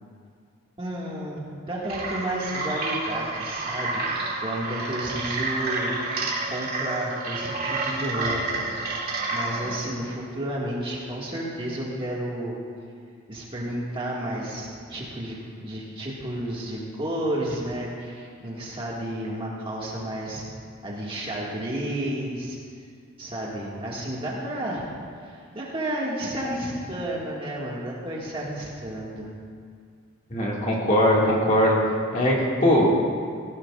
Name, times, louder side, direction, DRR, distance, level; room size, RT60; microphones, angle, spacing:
voice 1, 0.8-5.9 6.5-12.6 13.3-20.4 20.8-22.6 23.2-24.9 25.2-29.3, right 1 dB, 25° right, -5 dB, 1.9 m, -32 dB
sound 1, 1.8-9.8, right 3 dB, 45° right, 2.4 m, -29 dB
voice 2, 30.3-31.8 32.1-32.9, left 1 dB, 35° left, -4 dB, 2.1 m, -20 dB
17.0 x 15.5 x 2.5 m, 2.2 s
head